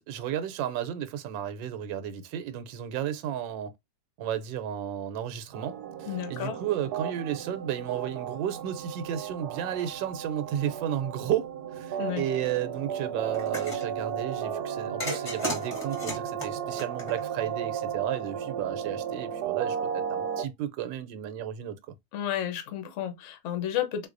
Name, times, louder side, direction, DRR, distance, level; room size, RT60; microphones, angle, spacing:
voice 1, 0.0-3.7 4.2-21.8, right 10 dB, 85° right, 1.3 m, -33 dB
sound 1, 5.5-20.5, right 8 dB, 70° right, 1.1 m, -34 dB
voice 2, 6.1-6.6 12.0-12.2 22.1-24.1, left 11 dB, 60° left, 0.8 m, -32 dB
sound 2, 13.3-13.9 15.0-17.5, left 1 dB, 25° left, 0.8 m, -35 dB
3.9 x 2.6 x 2.5 m
omnidirectional pair, 2.0 m